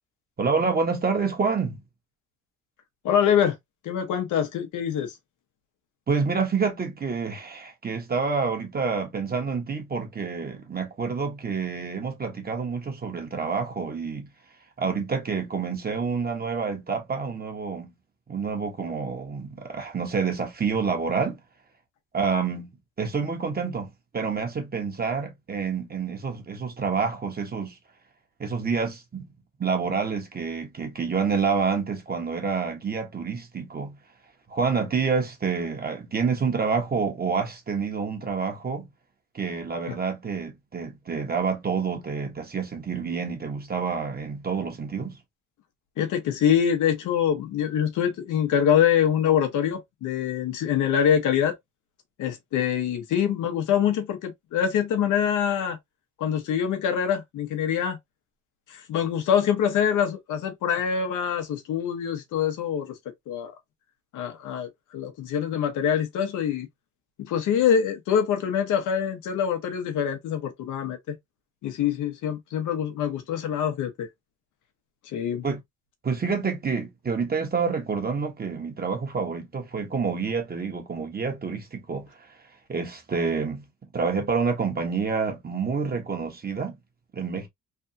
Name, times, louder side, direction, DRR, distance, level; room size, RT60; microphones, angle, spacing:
voice 1, 0.4-1.8 6.1-14.3 14.8-17.9 18.3-21.4 22.1-27.8 28.4-29.3 29.6-34.0 34.5-38.9 39.3-45.2 75.4-75.6 76.0-82.1 82.7-83.6 83.9-86.7 87.1-87.5, right 5 dB, 30° right, 1.2 m, -28 dB
voice 2, 3.0-3.6 3.8-5.1 39.9-40.0 46.0-51.5 52.2-55.8 56.2-58.0 58.7-62.9 63.3-63.5 64.1-66.7 67.2-71.1 71.6-74.1 75.1-75.4, left 8 dB, 85° left, 1.2 m, -25 dB
3.5 x 2.3 x 2.7 m
cardioid pair, 90°, 30 cm